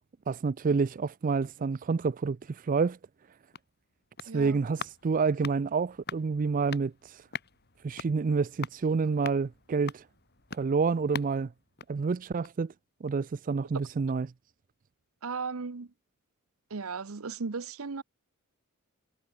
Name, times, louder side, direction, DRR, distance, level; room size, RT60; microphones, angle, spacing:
voice 1, 0.3-3.0 4.2-7.2 7.8-10.0 10.5-11.5 11.9-12.7 13.0-14.3, right 5 dB, 40° right, 0.4 m, -28 dB
sound 1, 3.2-12.7 13.1-13.2, left 6 dB, 50° left, 3.5 m, -45 dB
voice 2, 4.3-4.6 15.2-15.9 16.7-18.0, right 4 dB, 75° right, 0.9 m, -36 dB
head